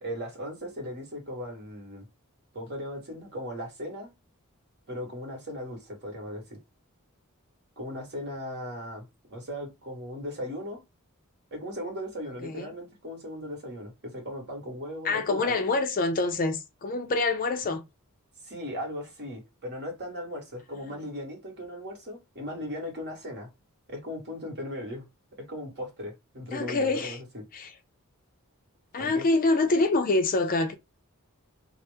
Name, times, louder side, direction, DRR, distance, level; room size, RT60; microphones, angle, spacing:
voice 1, 0.0-2.1 2.5-4.1 4.9-6.6 7.8-10.8 11.5-15.6 18.4-23.5 23.9-25.0 25.3-27.4 29.0-29.3, equal, 50° right, 1.4 m, -37 dB
voice 2, 15.0-17.8 20.9-21.0 26.5-27.2 27.5-27.7 28.9-30.8, left 3 dB, 40° left, 0.5 m, -26 dB
2.8 x 2.0 x 3.2 m
head